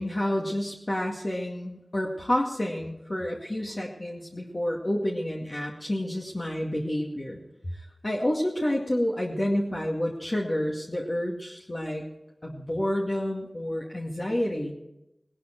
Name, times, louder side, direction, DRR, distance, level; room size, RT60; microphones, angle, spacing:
voice 1, 0.0-7.4 7.7-12.0 12.4-14.7, left 1 dB, 40° left, -2 dB, 2.2 m, -29 dB
18.5 x 11.5 x 4.6 m, 0.86 s
wide cardioid pair, 45°, 0 cm